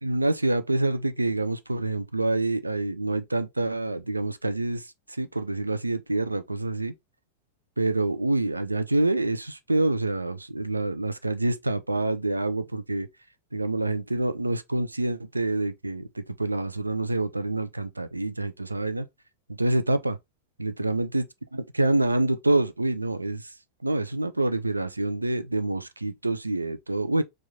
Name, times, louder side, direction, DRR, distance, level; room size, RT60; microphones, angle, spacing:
voice 1, 0.0-6.9 7.8-13.1 13.5-19.1 19.5-20.2 20.6-21.2 21.5-23.5 23.8-27.2, right 2 dB, 80° right, 0.5 m, -27 dB
4.5 x 2.4 x 3.3 m
figure-of-eight pair, 90°, 0 cm